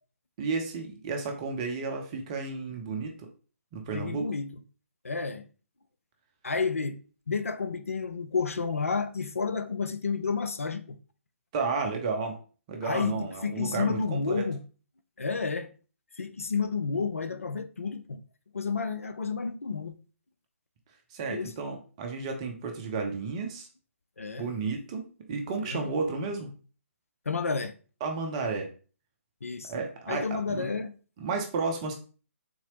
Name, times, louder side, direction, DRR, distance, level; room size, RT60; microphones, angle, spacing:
voice 1, 0.4-3.3 3.7-4.3 11.5-12.4 12.7-14.5 21.1-23.7 24.4-26.5 28.0-28.7 29.7-30.7 31.2-31.9, right 4 dB, 25° right, 0.6 m, -32 dB
voice 2, 3.9-4.6 5.0-5.5 6.4-7.0 7.3-11.0 12.8-14.6 15.2-15.7 16.2-18.2 18.5-20.0 21.3-21.5 24.2-24.5 25.6-25.9 27.3-27.7 29.4-29.7 30.1-30.9, left 5 dB, 70° left, 0.4 m, -31 dB
3.8 x 2.8 x 2.9 m
figure-of-eight pair, 140°, 8 cm